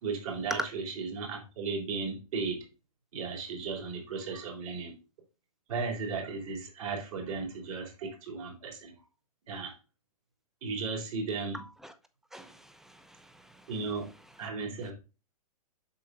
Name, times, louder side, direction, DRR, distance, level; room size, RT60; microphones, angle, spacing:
voice 1, 0.0-2.6 3.1-4.9 5.7-8.9 9.5-9.7 10.6-11.6 13.7-14.1 14.4-14.9, right 4 dB, 60° right, 3.4 m, -35 dB
voice 2, 11.5-11.9 12.3-13.7, equal, ahead, 0.5 m, -40 dB
7.9 x 6.3 x 2.5 m
hypercardioid pair, 115°, 20 cm